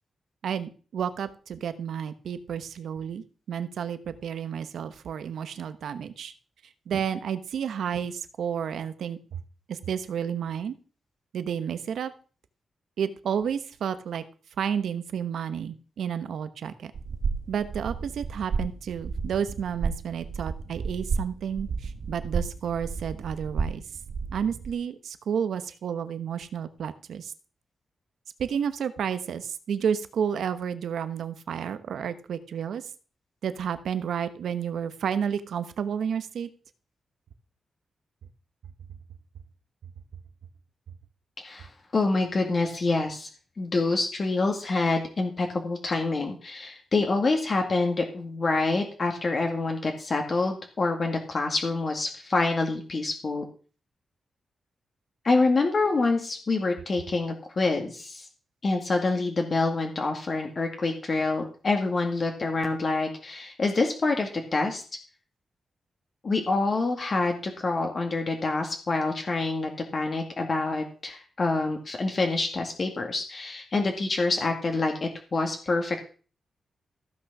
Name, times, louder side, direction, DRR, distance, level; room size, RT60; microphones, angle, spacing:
voice 1, 0.4-6.3 6.9-9.4 9.7-10.7 11.3-12.1 13.0-14.2 14.6-16.9 17.5-23.8 24.3-27.3 28.4-32.9 33.4-36.5, right 8 dB, 85° right, 12 dB, 1.1 m, -31 dB
sound 1, 16.9-24.7, right 5 dB, 70° right, 1.3 m, -32 dB
voice 2, 41.4-43.3 43.6-53.5 55.2-58.3 58.6-64.8 66.2-76.0, left 3 dB, 45° left, 3 dB, 2.0 m, -26 dB
15.0 x 6.3 x 6.1 m, 0.39 s
cardioid pair, 90°, 0 cm